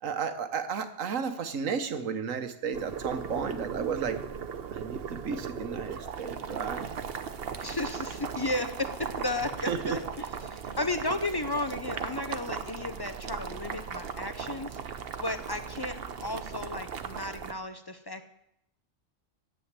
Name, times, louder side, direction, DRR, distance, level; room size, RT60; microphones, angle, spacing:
voice 1, 0.0-4.2 4.7-6.9 9.7-10.0, right 6 dB, 80° right, 8 dB, 1.4 m, -33 dB
Boiling, 2.7-17.5, right 6 dB, 55° right, 0.9 m, -37 dB
voice 2, 7.6-10.3 10.5-14.7 15.2-18.3, left 2 dB, 25° left, 9 dB, 0.5 m, -34 dB
10.5 x 7.7 x 8.8 m, 0.78 s
omnidirectional pair, 1.3 m